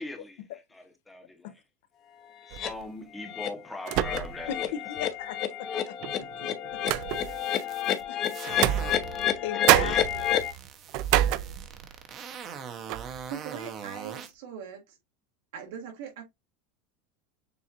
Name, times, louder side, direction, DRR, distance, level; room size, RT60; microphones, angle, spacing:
voice 1, 0.0-0.4 0.7-1.5 2.5-4.7 7.2-7.3 7.6-7.7 9.8-10.1, left 2 dB, 5° left, 0.8 m, -41 dB
sound 1, 2.5-2.7 3.2-3.5 3.8-10.5, left 10 dB, 40° left, 0.7 m, -30 dB
sound 2, 2.5-2.8 3.9-4.6 5.0-5.1 6.0-7.5 8.5-9.4 9.7-12.0 12.4-12.6 12.9-13.2, right 14 dB, 60° right, 0.3 m, -27 dB
voice 2, 4.5-6.8 7.5-7.7 8.1-8.6 9.4-10.4 11.0-11.3, left 10 dB, 75° left, 0.8 m, -39 dB
sound 3, 7.0-9.2 9.6-14.3, right 7 dB, 40° right, 0.8 m, -42 dB
voice 3, 13.3-15.0 15.5-16.2, right 8 dB, 80° right, 1.7 m, -40 dB
6.9 x 2.4 x 2.8 m
supercardioid pair, 130°, 0 cm